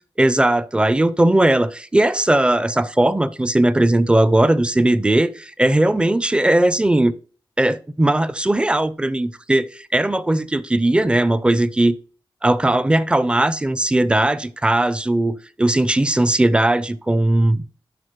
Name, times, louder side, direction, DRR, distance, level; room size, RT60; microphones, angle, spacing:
voice 1, 0.2-7.1 7.6-11.9 12.4-17.7, right 1 dB, 10° right, 0.4 m, -18 dB
11.5 x 3.9 x 3.0 m
wide cardioid pair, 100°, 9 cm